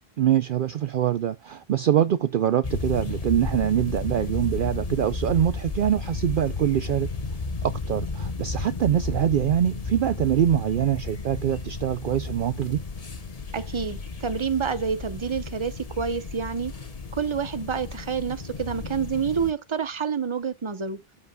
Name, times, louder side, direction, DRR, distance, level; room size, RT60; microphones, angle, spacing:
voice 1, 0.2-7.1 7.6-12.8, right 10 dB, 60° right, 0.7 m, -24 dB
sound 1, 2.6-19.5, left 3 dB, 40° left, 1.1 m, -33 dB
voice 2, 13.5-16.7 17.1-21.0, right 6 dB, 30° right, 0.9 m, -28 dB
13.5 x 4.8 x 2.3 m
omnidirectional pair, 1.1 m